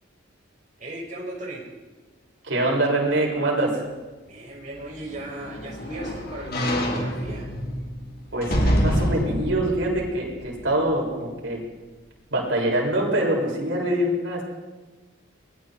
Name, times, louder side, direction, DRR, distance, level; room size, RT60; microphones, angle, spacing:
voice 1, 0.8-1.7 4.2-7.5, right 1 dB, 40° right, -3 dB, 6.0 m, -37 dB
voice 2, 2.4-3.8 8.3-11.6 12.3-14.5, right 1 dB, 70° right, -2 dB, 7.5 m, -24 dB
sound 1, 4.8-11.1 11.6-11.7, equal, 50° left, 3.6 m, -27 dB
30.0 x 23.0 x 4.7 m, 1.3 s
head